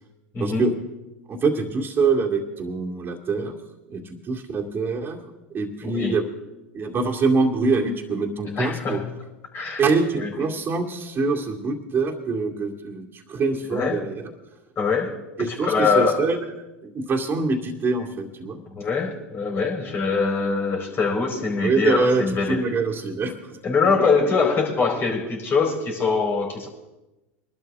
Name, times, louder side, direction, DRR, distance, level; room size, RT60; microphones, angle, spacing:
voice 1, 0.4-0.7 1.3-3.5 3.9-5.2 5.5-6.2 6.7-9.0 9.8-14.3 15.4-16.4 16.8-18.6 21.6-23.6, right 4 dB, 30° right, -1 dB, 2.3 m, -24 dB
voice 2, 5.8-6.2 8.5-9.1 9.5-9.9 10.2-10.3 13.7-14.0 14.8-16.3 18.6-22.7 23.6-26.7, left 4 dB, 35° left, 0 dB, 4.2 m, -23 dB
22.5 x 12.0 x 3.6 m, 1.0 s
hypercardioid pair, 95°, 7 cm